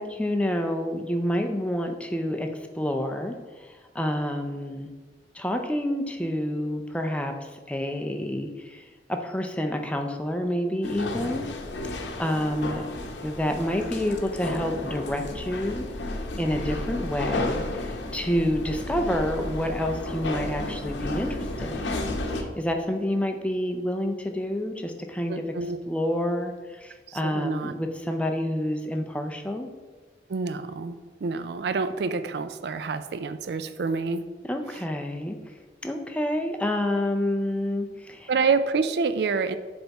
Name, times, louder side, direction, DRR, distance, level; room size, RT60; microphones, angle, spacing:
voice 1, 0.0-2.5 2.7-4.9 5.3-8.8 9.1-11.5 12.2-12.9 13.2-15.8 16.4-25.5 25.9-29.7 34.5-35.4 35.8-38.3, left 1 dB, 5° left, 4 dB, 0.5 m, -28 dB
sound 1, 10.8-22.4, left 2 dB, 80° left, 0.8 m, -32 dB
voice 2, 25.3-25.8 27.1-27.7 30.3-34.2 38.3-39.6, right 4 dB, 60° right, 11 dB, 0.4 m, -27 dB
7.7 x 3.5 x 4.0 m, 1.3 s
head